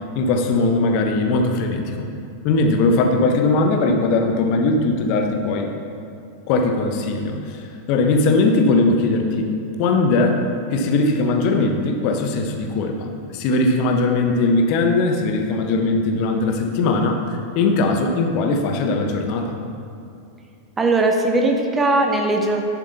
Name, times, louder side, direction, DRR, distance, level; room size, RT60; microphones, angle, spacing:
voice 1, 0.1-2.1 2.4-5.7 6.5-7.6 7.9-9.4 9.8-10.4 10.7-19.5, left 3 dB, 45° left, 3 dB, 1.0 m, -19 dB
voice 2, 20.8-22.6, right 2 dB, 15° right, 2 dB, 1.0 m, -19 dB
10.0 x 7.6 x 4.0 m, 2.6 s
figure-of-eight pair, 90°, 0 cm